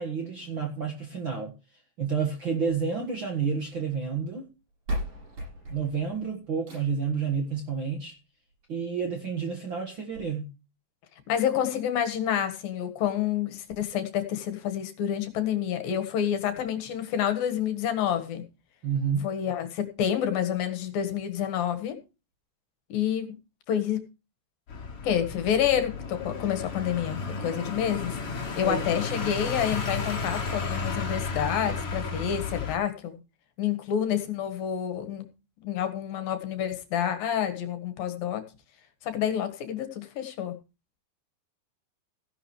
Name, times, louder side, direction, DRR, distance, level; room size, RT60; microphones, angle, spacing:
voice 1, 0.0-1.5 2.0-4.5 5.7-8.1 8.7-10.5 18.8-19.3 28.6-28.8, right 6 dB, 45° right, 1.6 m, -30 dB
sound 1, 2.5-3.7 4.5-4.6 4.9-7.1 8.5-8.6 9.1-9.2 9.4-9.5 10.1-10.2, equal, 65° right, 9.6 m, -37 dB
voice 2, 11.3-18.4 19.2-22.0 22.9-23.3 23.7-24.0 25.0-33.2 33.6-35.3 35.6-38.4 39.0-40.5, left 9 dB, 70° left, 3.3 m, -28 dB
sound 2, 24.7-32.8, left 4 dB, 40° left, 3.2 m, -33 dB
16.0 x 11.0 x 3.2 m
omnidirectional pair, 4.4 m